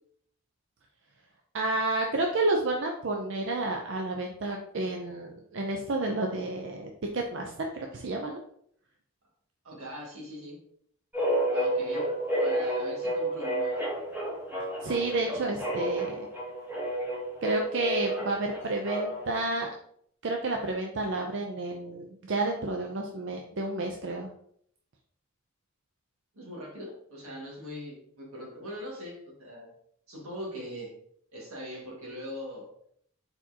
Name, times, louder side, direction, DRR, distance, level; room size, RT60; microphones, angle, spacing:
voice 1, 1.5-8.4 14.8-16.3 17.4-19.7 20.2-24.3, right 2 dB, 55° right, 2 dB, 0.5 m, -30 dB
voice 2, 9.6-10.6 11.5-12.1 12.4-13.8 26.3-29.7 30.1-30.9 31.3-32.7, equal, 85° right, -2 dB, 1.8 m, -41 dB
sound 1, 11.1-19.4, right 1 dB, 10° right, 1.1 m, -30 dB
4.3 x 4.2 x 2.8 m, 0.66 s
head